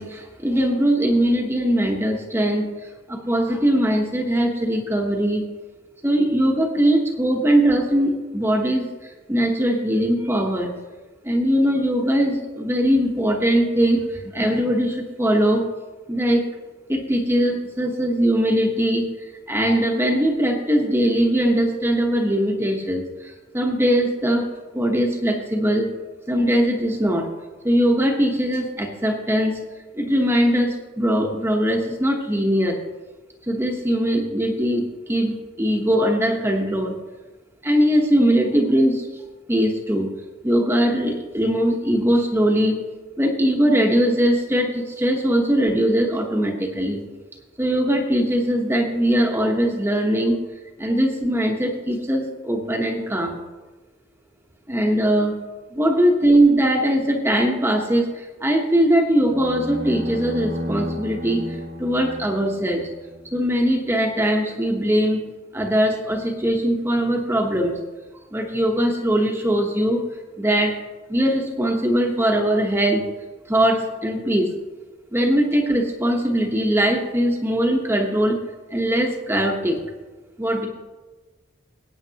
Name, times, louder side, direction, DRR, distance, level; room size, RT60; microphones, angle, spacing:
voice 1, 0.0-2.7 3.1-5.5 6.0-10.7 11.2-15.7 16.1-16.5 16.9-24.5 24.7-25.9 26.3-27.3 27.6-29.6 29.9-32.8 33.5-37.0 37.6-39.1 39.5-40.1 40.4-42.8 43.2-47.0 47.6-50.4 50.8-53.4 54.7-55.4 55.7-62.9 63.3-65.3 65.5-67.8 68.3-70.0 70.4-70.8 71.1-73.0 73.5-74.5 75.1-78.4 78.7-79.8 80.4-80.7, equal, 15° right, 1 dB, 1.0 m, -21 dB
sound 1, 59.2-63.5, left 1 dB, 80° right, 1.9 m, -33 dB
19.0 x 8.7 x 2.9 m, 1.2 s
head